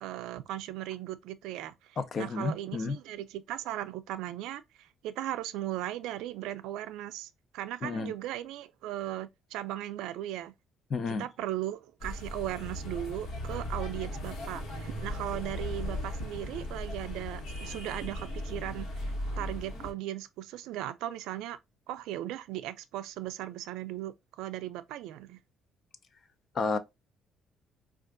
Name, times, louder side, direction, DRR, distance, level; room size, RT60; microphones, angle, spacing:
voice 1, 0.0-10.5 11.1-21.6 21.9-25.4, right 13 dB, 90° right, 0.3 m, -37 dB
voice 2, 2.0-3.0 7.8-8.1 10.9-11.3 26.5-26.8, left 4 dB, 40° left, 0.5 m, -31 dB
sound 1, 12.0-19.9, left 1 dB, 60° left, 1.3 m, -37 dB
4.4 x 2.4 x 2.5 m
cardioid pair, 130°, 0 cm